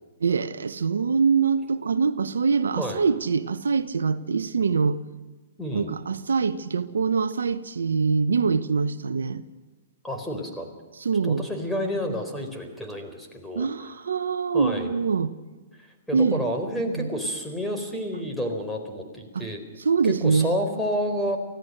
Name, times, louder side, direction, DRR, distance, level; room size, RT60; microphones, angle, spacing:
voice 1, 0.2-5.0 5.7-9.4 11.0-11.5 13.5-15.3 16.1-16.4 16.9-17.1 19.3-19.4 19.8-20.5, right 5 dB, 80° right, 0.9 m, -24 dB
voice 2, 5.6-6.0 10.0-10.7 11.2-13.9 14.5-14.9 15.8-19.6 20.0-21.4, equal, 5° left, 4.2 m, -30 dB
24.5 x 16.0 x 6.6 m
hypercardioid pair, 120°, 0 cm